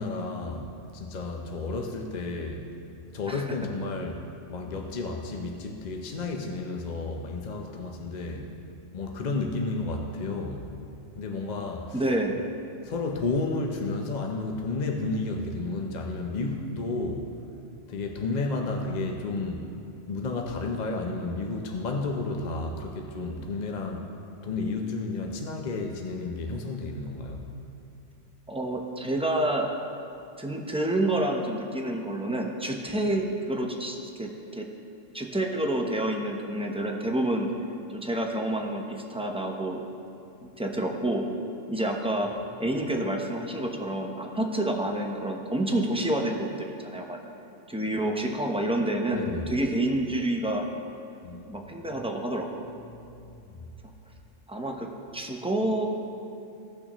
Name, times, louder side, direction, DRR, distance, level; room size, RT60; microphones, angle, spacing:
voice 1, 0.0-2.7 3.1-8.5 8.9-10.7 11.2-12.0 12.8-17.4 17.9-19.7 20.1-24.1 24.4-27.5 42.6-42.8 49.1-49.7 51.2-51.6 51.8-52.0 52.9-53.6, left 3 dB, 45° left, 2 dB, 0.7 m, -32 dB
voice 2, 11.9-12.5 28.5-29.7 30.4-34.7 35.1-37.5 37.9-39.8 40.6-41.3 41.7-42.3 42.6-47.2 47.7-50.7 51.4-52.7 54.5-55.9, right 1 dB, 5° right, 1 dB, 0.6 m, -28 dB
16.0 x 6.2 x 3.0 m, 2.6 s
omnidirectional pair, 1.2 m